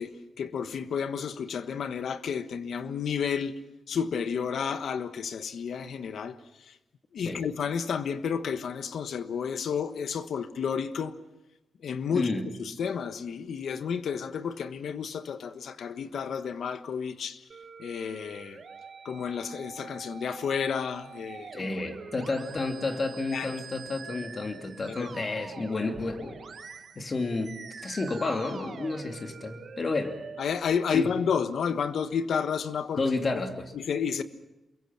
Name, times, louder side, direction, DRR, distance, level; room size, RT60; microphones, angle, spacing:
voice 1, 0.0-3.6 3.9-6.4 6.6-6.7 7.1-11.1 11.8-12.3 12.6-17.4 17.8-18.6 19.0-21.5 23.3-23.5 24.9-25.1 30.4-33.1 33.7-34.2, left 6 dB, 75° left, 1.3 m, -31 dB
voice 2, 12.1-12.5 21.5-26.4 27.0-27.6 27.8-30.2 30.9-31.1 32.9-33.7, left 3 dB, 40° left, 2.8 m, -31 dB
Musical instrument, 17.5-30.5, right 5 dB, 55° right, 1.6 m, -45 dB
28.0 x 22.5 x 6.0 m
cardioid pair, 100°, 0 cm